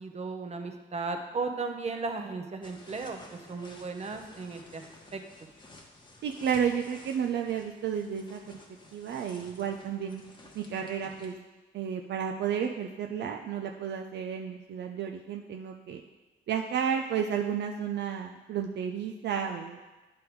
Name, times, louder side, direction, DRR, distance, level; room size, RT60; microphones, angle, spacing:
voice 1, 0.0-4.8 5.1-5.2, right 4 dB, 35° right, 5 dB, 0.8 m, -35 dB
sound 1, 2.6-11.3, left 2 dB, 25° left, 1.1 m, -53 dB
voice 2, 6.2-8.6 8.9-10.2 10.5-11.4 11.7-16.0 16.5-19.8, right 8 dB, 60° right, 2 dB, 0.5 m, -32 dB
9.5 x 3.4 x 4.6 m, 1.2 s
cardioid pair, 90°, 20 cm